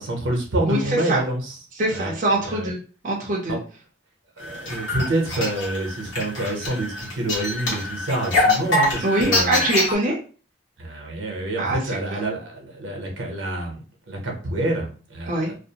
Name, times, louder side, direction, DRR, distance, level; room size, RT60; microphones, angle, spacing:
voice 1, 0.0-1.4 1.9-2.1 2.4-2.7 3.5-3.6 4.4-9.6 10.8-15.6, right 1 dB, 80° right, 1 dB, 0.8 m, -27 dB
voice 2, 0.7-1.2 1.8-2.8 3.0-3.6 9.0-10.2 11.6-12.2 15.3-15.5, right 2 dB, 45° right, -2 dB, 0.5 m, -24 dB
sound 1, 4.4-9.9, left 2 dB, 70° left, 1.1 m, -24 dB
2.5 x 2.0 x 2.8 m, 0.39 s
head